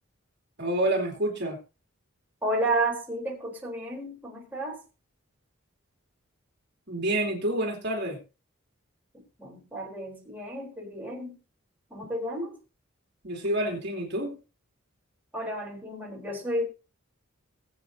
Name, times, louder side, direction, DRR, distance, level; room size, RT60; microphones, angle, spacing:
voice 1, 0.6-1.6 6.9-8.2 13.2-14.4, right 1 dB, 55° right, 3.2 m, -28 dB
voice 2, 2.4-4.8 9.1-11.4 11.9-12.6 15.3-16.6, right 1 dB, 10° right, 3.9 m, -32 dB
21.0 x 8.0 x 2.8 m
head